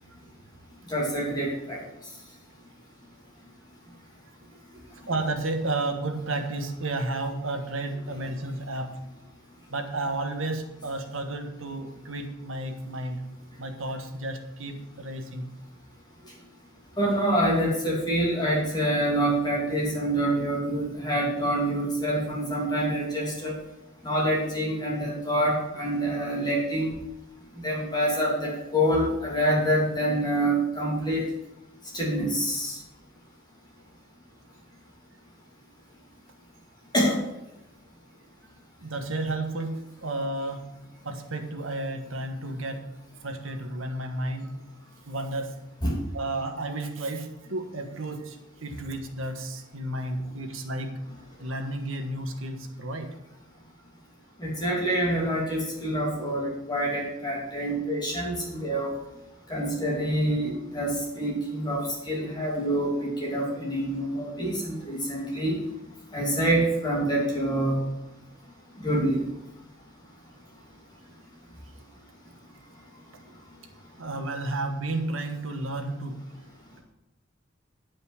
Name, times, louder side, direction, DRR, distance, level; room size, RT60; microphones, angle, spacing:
voice 1, 0.9-1.8 17.0-23.6 24.0-26.9 27.5-31.2 31.9-32.8 36.9-37.2 45.8-46.0 54.4-58.9 59.5-65.6 66.1-67.9 68.8-69.2, right 1 dB, 20° left, -3 dB, 2.6 m, -26 dB
voice 2, 5.1-9.0 9.7-13.3 13.6-15.5 38.8-42.9 43.2-44.6 45.1-45.6 46.1-51.0 51.4-53.1 74.0-76.3, right 2 dB, 90° right, 4 dB, 1.4 m, -32 dB
9.4 x 5.4 x 7.2 m, 0.91 s
head